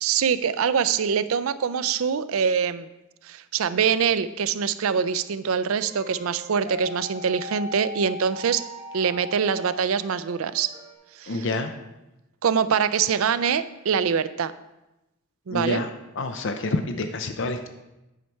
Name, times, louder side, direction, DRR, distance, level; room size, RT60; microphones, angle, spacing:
voice 1, 0.0-2.9 3.2-8.6 8.9-10.7 11.2-11.3 12.4-14.5 15.5-15.8, right 7 dB, 70° right, 14 dB, 0.4 m, -24 dB
Celtic Whistle Melody, 5.8-10.9, left 1 dB, 25° right, 1.1 m, -39 dB
voice 2, 11.2-11.7 15.5-15.9 16.1-17.7, left 2 dB, 60° left, 8 dB, 0.6 m, -28 dB
9.2 x 5.5 x 4.6 m, 0.97 s
head